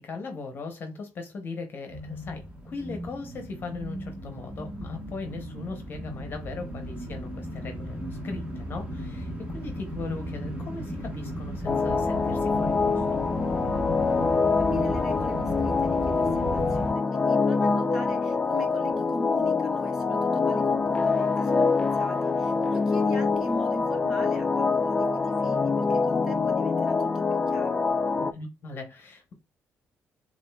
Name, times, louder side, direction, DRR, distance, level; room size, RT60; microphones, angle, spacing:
voice 1, 0.0-13.2 28.2-29.3, left 3 dB, 45° left, 0.8 m, -38 dB
sound 1, 1.9-16.9, equal, 20° right, 1.2 m, -35 dB
sound 2, 11.7-28.3, left 4 dB, 25° left, 0.4 m, -25 dB
voice 2, 14.6-27.8, left 1 dB, 5° right, 1.6 m, -41 dB
7.2 x 2.5 x 2.2 m
cardioid pair, 125°, 5 cm